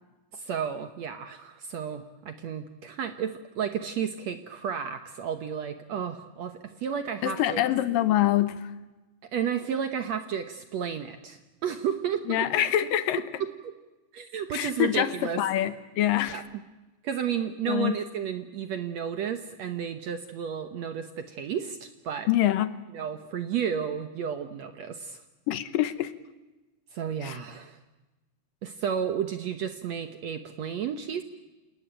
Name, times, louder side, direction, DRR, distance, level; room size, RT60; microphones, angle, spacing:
voice 1, 0.3-7.6 9.3-12.5 13.6-13.7 14.1-15.4 16.3-16.4 17.0-22.3 22.9-25.2 26.9-27.8 28.6-31.2, right 8 dB, 65° right, 8 dB, 1.8 m, -32 dB
voice 2, 7.2-8.7 12.3-13.2 14.5-16.4 17.7-18.0 22.3-22.8 25.5-26.1 27.2-27.4, left 13 dB, 75° left, 13 dB, 2.6 m, -25 dB
28.5 x 18.5 x 8.9 m, 1.1 s
omnidirectional pair, 4.2 m